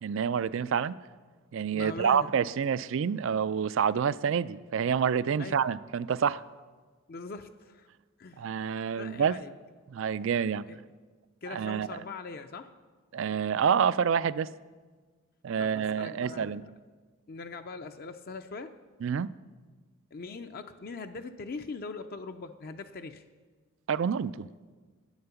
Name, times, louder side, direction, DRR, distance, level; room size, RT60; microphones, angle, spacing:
voice 1, 0.0-1.0 1.5-6.4 8.4-9.4 9.9-10.6 11.5-12.0 13.1-14.5 15.4-16.6 19.0-19.3 23.9-24.5, right 7 dB, 65° right, 0.4 m, -28 dB
voice 2, 1.7-2.3 5.4-5.6 7.1-7.9 8.2-8.5 9.0-9.5 10.4-10.8 11.4-12.7 15.6-16.7 17.3-18.7 20.1-23.2, left 4 dB, 45° left, 0.5 m, -41 dB
11.5 x 8.8 x 7.0 m
head